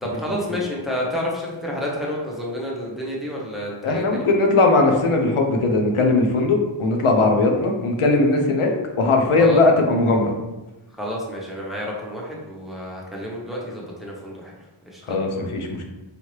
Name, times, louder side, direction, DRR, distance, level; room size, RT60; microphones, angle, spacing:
voice 1, 0.0-4.2 9.4-9.6 11.0-14.5 14.9-15.2, left 1 dB, ahead, -3 dB, 0.9 m, -29 dB
voice 2, 3.8-8.7 9.0-10.3 15.1-15.8, left 3 dB, 85° left, 2 dB, 0.7 m, -19 dB
4.9 x 2.7 x 3.1 m, 1.1 s
wide cardioid pair, 85°, 49 cm